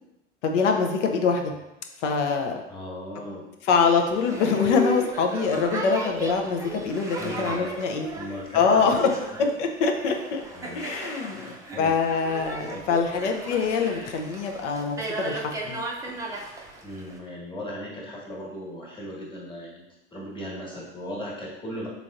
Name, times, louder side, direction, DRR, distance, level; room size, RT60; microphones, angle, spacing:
voice 1, 0.4-1.5 2.0-2.6 3.6-8.1 8.5-9.1 9.4-10.4 10.7-15.8, left 5 dB, 75° left, 3 dB, 0.7 m, -24 dB
voice 2, 2.7-3.5 7.2-7.7 8.1-9.0 10.5-11.9 12.7-12.9 16.8-21.9, equal, 15° left, -3 dB, 1.3 m, -37 dB
Boat Water vehicle, 4.0-17.2, right 1 dB, 10° right, 0.5 m, -35 dB
3.9 x 3.3 x 2.4 m, 0.93 s
hypercardioid pair, 85°, 36 cm